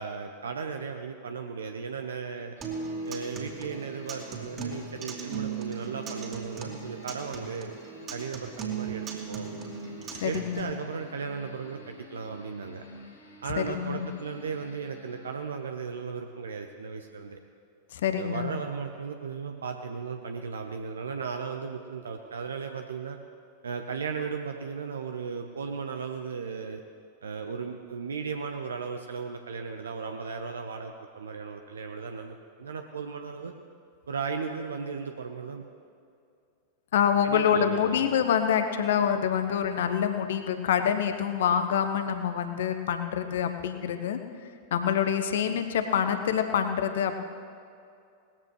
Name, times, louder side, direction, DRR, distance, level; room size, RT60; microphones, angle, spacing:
voice 1, 0.0-2.5 3.0-7.7 8.1-9.5 10.2-12.8 13.4-17.4 18.2-23.2 23.6-26.8 27.2-33.5 34.1-35.6 37.2-37.9, right 5 dB, 70° right, 5 dB, 0.7 m, -36 dB
sound 1, 2.6-15.7, left 1 dB, 75° left, 4.0 m, -50 dB
Acoustic guitar, 2.6-10.6, right 6 dB, 30° right, 2.5 m, -38 dB
voice 2, 10.2-10.7 13.6-14.1 17.9-18.5 36.9-44.2 44.7-47.2, left 8 dB, 60° left, 8 dB, 1.0 m, -26 dB
19.5 x 14.5 x 3.3 m, 2.4 s
figure-of-eight pair, 90°, 0 cm